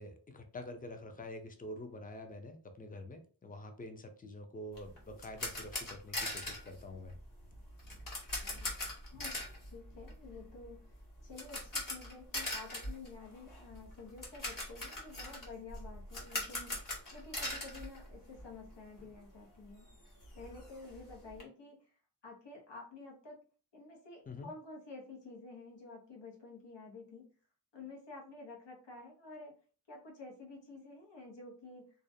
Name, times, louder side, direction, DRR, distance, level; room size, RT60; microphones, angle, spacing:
voice 1, 0.0-7.2 24.3-24.5, left 1 dB, 20° left, 6 dB, 0.4 m, -47 dB
sound 1, 4.7-18.7 19.0-19.1 19.5-19.6 19.9-21.4, left 1 dB, 50° left, 1.1 m, -42 dB
voice 2, 8.4-8.7 9.1-19.9 20.3-21.9 22.2-23.4 23.7-27.3 27.7-29.5 29.9-32.0, left 3 dB, 80° left, -1 dB, 0.9 m, -51 dB
2.4 x 2.1 x 2.5 m, 0.39 s
wide cardioid pair, 90°, 42 cm